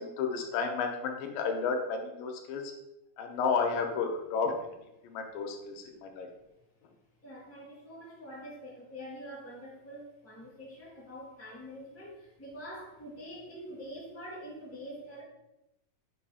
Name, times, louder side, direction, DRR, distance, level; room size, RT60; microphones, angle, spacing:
voice 1, 0.0-2.7 3.2-4.5 5.0-6.3, left 5 dB, 85° left, 3 dB, 2.5 m, -32 dB
voice 2, 7.2-15.2, equal, 10° left, -6 dB, 0.6 m, -45 dB
6.3 x 2.7 x 5.5 m, 0.93 s
omnidirectional pair, 3.9 m